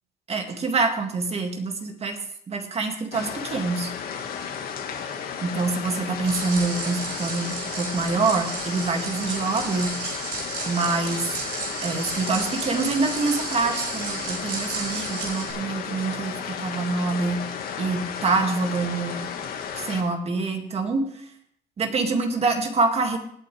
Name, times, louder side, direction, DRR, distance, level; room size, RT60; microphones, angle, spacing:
voice 1, 0.3-2.2 2.5-3.9 5.4-9.9 10.7-11.3 11.8-17.4 17.8-19.3 19.8-21.1 21.8-23.2, right 3 dB, 35° right, 4 dB, 2.3 m, -26 dB
sound 1, 3.1-20.0, left 7 dB, 65° left, 1.8 m, -34 dB
sound 2, 6.2-15.5, right 4 dB, 65° right, 4.8 m, -33 dB
19.5 x 8.9 x 3.4 m, 0.63 s
cardioid pair, 110°, 17 cm